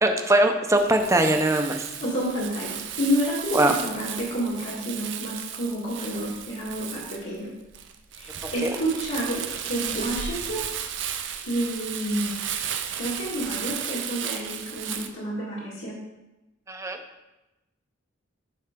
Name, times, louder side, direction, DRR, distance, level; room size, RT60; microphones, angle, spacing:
voice 1, 0.0-1.8 3.5-3.7 8.4-8.7 16.7-17.0, right 1 dB, 15° right, 5 dB, 0.6 m, -21 dB
Crumpling crinkling, 0.8-15.1, right 9 dB, 60° right, 0.6 m, -34 dB
voice 2, 2.0-7.5 8.1-10.6 11.4-12.3 13.0-16.0, equal, 65° left, -8 dB, 2.0 m, -29 dB
10.0 x 5.4 x 3.7 m, 1.0 s
head